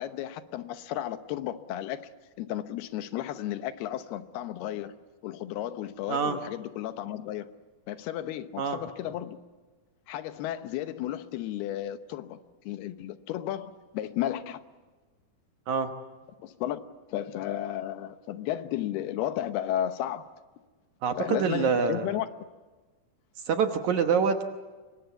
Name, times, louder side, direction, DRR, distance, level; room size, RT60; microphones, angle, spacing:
voice 1, 0.0-2.1 2.4-4.9 5.2-7.5 7.9-9.4 10.1-12.4 12.6-14.6 16.4-16.8 17.1-20.3 21.2-22.3, left 12 dB, 85° left, 3.0 m, -33 dB
voice 2, 21.0-22.1 23.5-24.5, right 6 dB, 60° right, 2.2 m, -26 dB
25.5 x 23.0 x 8.3 m
omnidirectional pair, 4.5 m